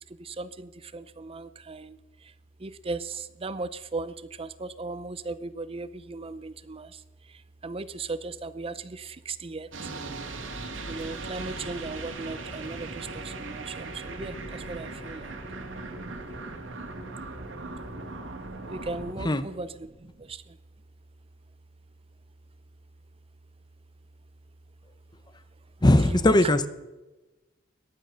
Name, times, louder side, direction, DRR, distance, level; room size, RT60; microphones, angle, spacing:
voice 1, 0.2-2.0 2.6-6.9 7.6-9.7 10.9-15.3 18.7-19.9 20.3-20.4 26.3-26.4, right 3 dB, 30° right, 15 dB, 0.6 m, -37 dB
sound 1, 9.7-19.1, right 3 dB, 85° right, 2.4 m, -38 dB
voice 2, 25.8-26.7, left 1 dB, 20° left, 13 dB, 0.8 m, -20 dB
18.5 x 12.0 x 6.3 m, 1.1 s
head